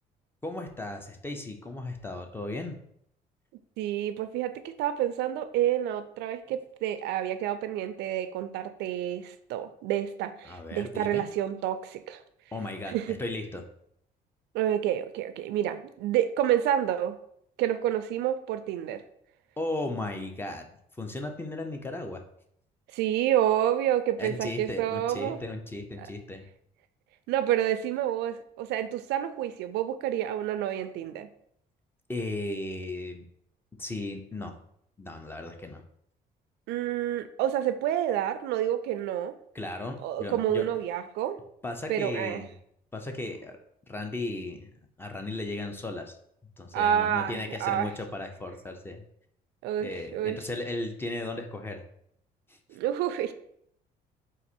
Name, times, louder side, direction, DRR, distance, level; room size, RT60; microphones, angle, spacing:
voice 1, 0.4-2.8 10.5-11.3 12.5-13.6 19.6-20.7 21.0-22.2 24.2-26.5 32.1-33.2 33.8-34.5 35.0-35.8 39.5-40.7 41.6-42.5 42.9-43.6 43.9-44.7 45.0-46.1 46.6-49.0 49.8-51.8 52.5-52.6, left 2 dB, 15° left, 4 dB, 0.5 m, -36 dB
voice 2, 3.8-12.2 12.9-13.2 14.5-17.1 17.6-19.0 22.9-25.4 26.0-26.1 27.3-31.3 36.7-39.3 40.0-41.4 41.9-42.4 46.7-47.9 49.6-50.4 52.7-53.3, right 11 dB, 80° right, 10 dB, 0.4 m, -29 dB
4.0 x 2.5 x 4.3 m, 0.71 s
cardioid pair, 110°, 17 cm